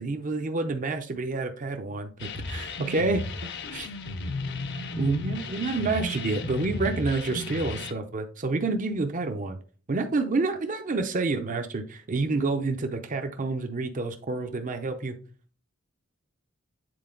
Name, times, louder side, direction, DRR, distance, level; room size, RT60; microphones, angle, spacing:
voice 1, 0.0-3.9 5.0-9.6 9.9-15.2, right 3 dB, 40° right, 6 dB, 0.6 m, -28 dB
sound 1, 2.2-7.9, left 2 dB, 55° left, 0.7 m, -34 dB
7.7 x 4.2 x 3.7 m, 0.42 s
head